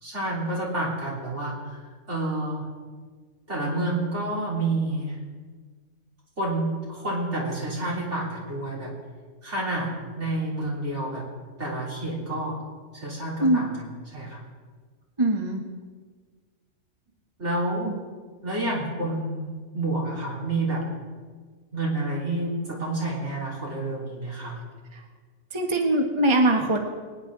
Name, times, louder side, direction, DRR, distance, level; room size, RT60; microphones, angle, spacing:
voice 1, 0.0-1.8 2.1-2.7 3.5-5.2 6.4-8.9 9.4-11.3 11.6-12.6 12.9-14.4 17.4-17.9 18.4-20.8 21.7-24.6, right 2 dB, 70° right, -5 dB, 3.8 m, -29 dB
voice 2, 15.2-15.7 24.9-25.0 25.5-26.8, right 1 dB, 25° right, 2 dB, 1.2 m, -22 dB
24.5 x 9.7 x 3.8 m, 1.5 s
omnidirectional pair, 1.3 m